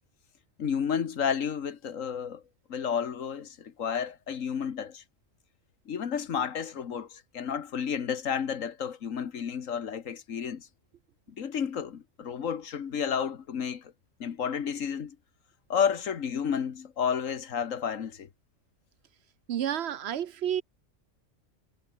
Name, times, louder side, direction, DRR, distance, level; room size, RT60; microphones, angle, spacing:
voice 1, 0.6-2.4 2.7-5.0 5.9-10.7 11.4-13.9 14.2-15.2 15.7-18.3, left 7 dB, 80° left, 1.7 m, -31 dB
voice 2, 19.5-20.6, right 10 dB, 60° right, 0.8 m, -30 dB
omnidirectional pair, 1.3 m